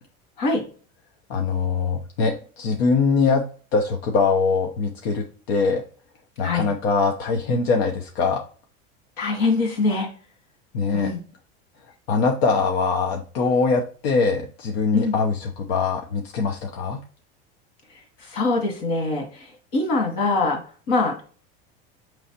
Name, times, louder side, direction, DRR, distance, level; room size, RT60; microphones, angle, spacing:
voice 1, 1.3-3.4 3.7-5.8 6.4-8.4 10.7-11.1 12.1-17.0, left 4 dB, 85° left, 2 dB, 0.8 m, -22 dB
voice 2, 9.2-10.1 10.9-11.2 14.9-15.2 18.2-20.6 20.9-21.4, left 3 dB, 60° left, 3 dB, 1.8 m, -23 dB
5.3 x 3.1 x 2.8 m, 0.40 s
supercardioid pair, 155°, 30 cm